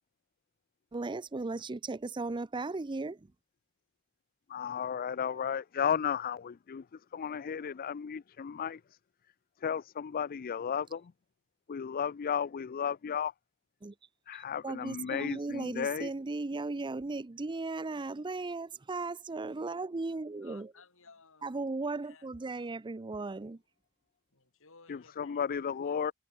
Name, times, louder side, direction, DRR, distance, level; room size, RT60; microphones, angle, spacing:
voice 1, 0.9-3.3 13.8-13.9 14.3-20.7 21.4-23.6, right 3 dB, 20° right, 0.5 m, -36 dB
voice 2, 4.5-8.8 9.6-11.1 11.7-13.3 14.3-16.1 24.9-26.1, left 7 dB, 40° left, 0.4 m, -34 dB
voice 3, 19.9-21.6 22.0-22.3 24.3-25.4 25.7-26.1, left 4 dB, 65° left, 5.2 m, -59 dB
head